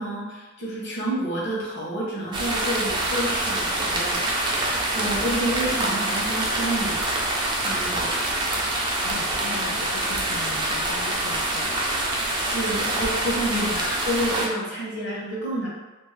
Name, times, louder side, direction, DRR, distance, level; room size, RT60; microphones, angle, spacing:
voice 1, 0.0-4.6 4.9-7.1 7.6-8.1 12.5-15.7, right 1 dB, 60° left, -6 dB, 1.0 m, -29 dB
sound 1, 2.3-14.5, right 1 dB, 20° right, 0.4 m, -25 dB
voice 2, 9.0-11.8 13.5-13.9, left 4 dB, 90° left, 8 dB, 0.3 m, -38 dB
2.6 x 2.0 x 3.3 m, 1.2 s
head